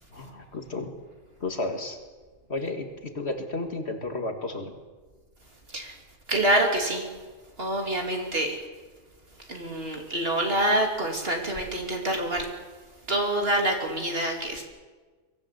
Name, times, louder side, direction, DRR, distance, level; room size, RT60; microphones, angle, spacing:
voice 1, 0.1-0.9 1.4-2.0 2.5-4.7, left 2 dB, 50° left, 5 dB, 2.2 m, -32 dB
voice 2, 6.3-7.1 7.6-8.6 9.5-12.5 13.1-14.6, right 1 dB, 45° right, 2 dB, 3.0 m, -26 dB
23.5 x 15.0 x 8.1 m, 1.4 s
omnidirectional pair, 1.4 m